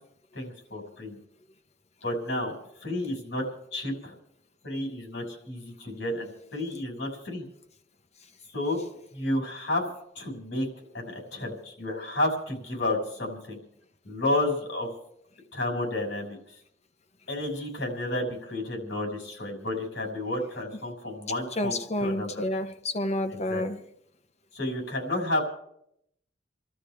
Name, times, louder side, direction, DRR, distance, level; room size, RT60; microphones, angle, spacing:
voice 1, 0.3-1.2 2.0-2.5 2.8-3.4 3.7-4.1 4.6-7.4 8.5-8.8 9.1-9.8 10.2-10.7 10.9-13.6 14.0-14.9 15.5-16.4 17.3-22.4 23.5-23.6 24.5-25.4, left 1 dB, 70° left, 5.9 m, -31 dB
voice 2, 21.6-23.9, left 1 dB, 35° left, 1.0 m, -29 dB
29.5 x 12.5 x 3.5 m
head